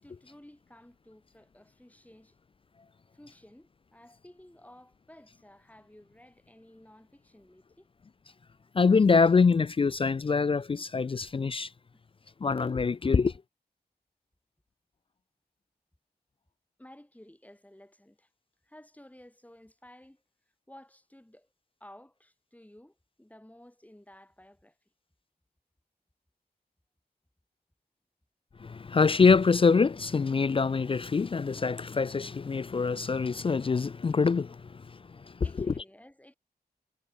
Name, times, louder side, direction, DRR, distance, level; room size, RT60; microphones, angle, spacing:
voice 1, 0.0-2.4 3.1-7.9 16.8-18.3 18.6-20.2 20.7-21.5 21.8-24.8 35.4-36.4, left 1 dB, 10° left, 5.4 m, -54 dB
voice 2, 8.7-11.7 12.4-13.3 28.6-35.3 35.6-35.7, left 5 dB, 30° left, 0.3 m, -25 dB
wide cardioid pair, 70°, 17 cm